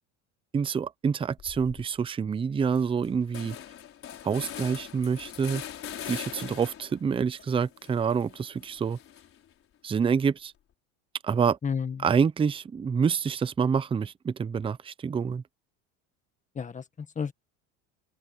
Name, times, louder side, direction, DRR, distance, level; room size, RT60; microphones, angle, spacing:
voice 1, 0.5-3.6 4.2-5.6 6.1-9.0 9.8-10.5 11.2-11.6 12.0-15.4, right 6 dB, 15° right, 0.6 m, -27 dB
sound 1, 1.4-1.9 2.3-2.4 2.6-7.0 7.4-9.5, left 10 dB, 40° left, 4.4 m, -42 dB
voice 2, 11.6-12.1 16.6-17.3, left 6 dB, 20° left, 1.6 m, -32 dB
cardioid pair, 130°, 34 cm